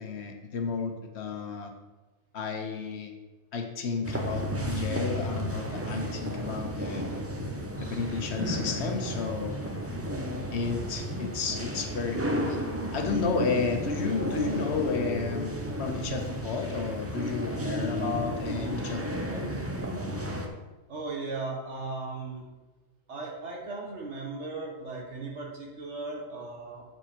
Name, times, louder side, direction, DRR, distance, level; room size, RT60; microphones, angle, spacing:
voice 1, 0.0-1.7 2.3-3.1 3.5-7.2 7.8-9.6 10.5-12.6 12.9-19.5, left 5 dB, 70° left, 5 dB, 1.1 m, -32 dB
sound 1, 4.0-20.5, equal, 20° right, 0.5 m, -33 dB
voice 2, 20.9-22.4 23.1-26.9, right 3 dB, 80° right, -1 dB, 1.8 m, -37 dB
7.8 x 4.6 x 4.3 m, 1.1 s
omnidirectional pair, 1.2 m